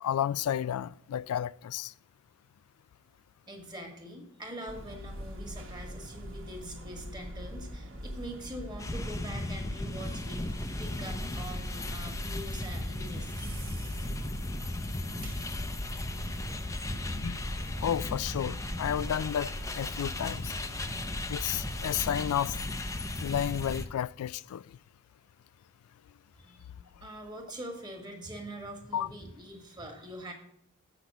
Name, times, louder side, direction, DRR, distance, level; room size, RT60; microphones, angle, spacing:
voice 1, 0.0-1.9 17.1-17.4 17.8-20.5 21.3-22.6 23.2-24.6 28.9-29.1, left 10 dB, 85° left, 0.3 m, -32 dB
voice 2, 3.5-13.7 26.3-30.3, right 1 dB, 20° right, 1.6 m, -44 dB
sound 1, 4.7-23.0, equal, 65° right, 1.4 m, -43 dB
sound 2, 8.8-23.9, left 1 dB, 15° left, 0.5 m, -36 dB
8.0 x 6.0 x 7.1 m
head